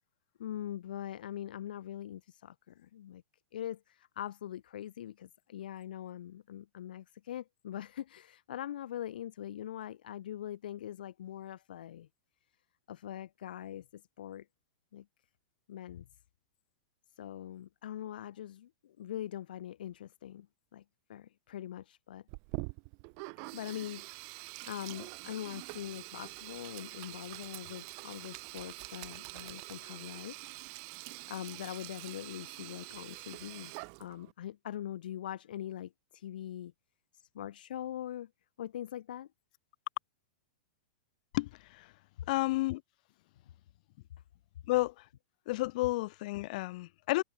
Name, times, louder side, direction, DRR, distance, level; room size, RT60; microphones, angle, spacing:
voice 1, 0.4-3.2 3.5-12.1 12.9-14.5 14.9-15.1 15.7-16.1 17.2-20.5 20.7-20.8 21.1-22.2 23.5-30.5 31.3-36.7 37.1-38.3 38.6-39.3, left 11 dB, 70° left, 4.1 m, -42 dB
Sink (filling or washing), 22.3-34.3, right 40 dB or more, 50° right, 2.5 m, -45 dB
voice 2, 41.3-41.9 42.3-42.8 44.7-45.0 45.5-47.2, left 20 dB, 55° left, 1.4 m, -31 dB
hypercardioid pair, 115°, 5 cm